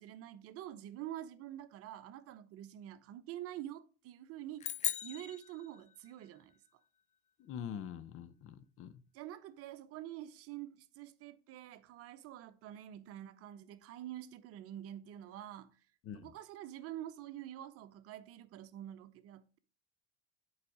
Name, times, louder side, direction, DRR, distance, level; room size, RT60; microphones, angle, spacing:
voice 1, 0.0-4.7 5.0-6.8 9.1-15.7 16.1-19.6, right 12 dB, 45° right, 0.8 m, -47 dB
sound 1, 4.6-6.3, left 10 dB, 20° left, 0.4 m, -39 dB
voice 2, 7.4-9.0 16.1-16.3, left 8 dB, 40° left, 0.7 m, -44 dB
8.3 x 4.9 x 4.9 m
figure-of-eight pair, 75°, 34 cm